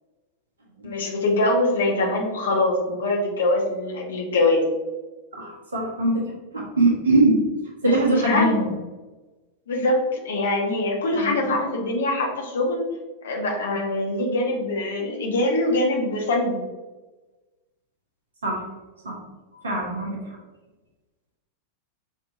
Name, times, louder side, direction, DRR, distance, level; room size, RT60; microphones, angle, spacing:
voice 1, 0.8-4.7 7.8-8.5 9.7-12.8 13.2-16.6, left 2 dB, 65° left, 0 dB, 0.9 m, -23 dB
voice 2, 5.3-7.4 7.8-8.7 11.1-11.3 18.4-18.7 19.0-19.2 19.6-20.2, right 2 dB, 70° right, -2 dB, 1.2 m, -22 dB
5.8 x 2.9 x 2.5 m, 1.2 s
figure-of-eight pair, 90°, 0 cm